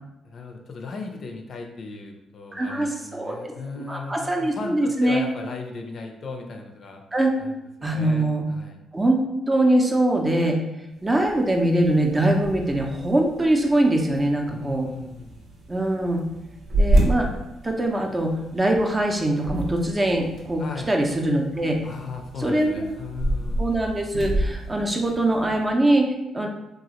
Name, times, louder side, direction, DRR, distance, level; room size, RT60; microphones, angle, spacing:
voice 1, 0.2-7.0 7.4-7.5 7.8-8.8 14.5-15.5 20.6-20.9 21.8-23.6, left 3 dB, 55° left, 3 dB, 0.4 m, -37 dB
voice 2, 2.5-3.5 3.9-5.2 7.1-7.3 7.8-8.5 8.9-9.2 9.5-10.6 11.0-14.9 15.7-16.2 16.8-17.3 17.6-21.8 22.4-22.9 23.6-26.5, right 1 dB, 20° right, 2 dB, 0.5 m, -22 dB
sound 1, 10.9-25.7, right 1 dB, 70° right, 0.8 m, -30 dB
3.0 x 2.4 x 2.8 m, 0.92 s
cardioid pair, 90°, 0 cm